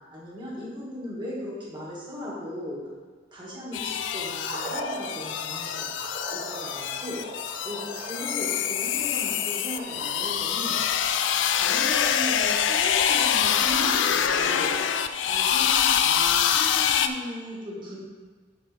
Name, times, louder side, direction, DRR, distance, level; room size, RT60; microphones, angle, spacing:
voice 1, 0.1-2.8 3.3-5.9 6.3-7.2 7.6-10.8 11.5-14.7 15.2-18.0, equal, 25° right, -6 dB, 2.2 m, -37 dB
sound 1, 3.7-17.1, left 8 dB, 70° left, 0.4 m, -25 dB
sound 2, 4.4-16.7, right 1 dB, 40° right, 1.3 m, -42 dB
7.6 x 4.5 x 5.3 m, 1.5 s
head